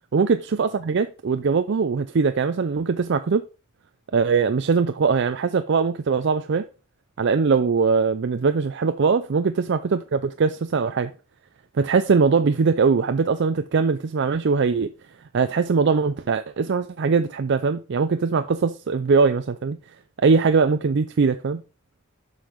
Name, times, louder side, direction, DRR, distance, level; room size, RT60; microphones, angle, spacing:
voice 1, 0.1-3.5 4.1-6.7 7.2-11.1 11.7-14.9 15.3-19.8 20.2-21.6, right 5 dB, 55° right, 0.4 m, -21 dB
7.3 x 5.4 x 5.1 m
head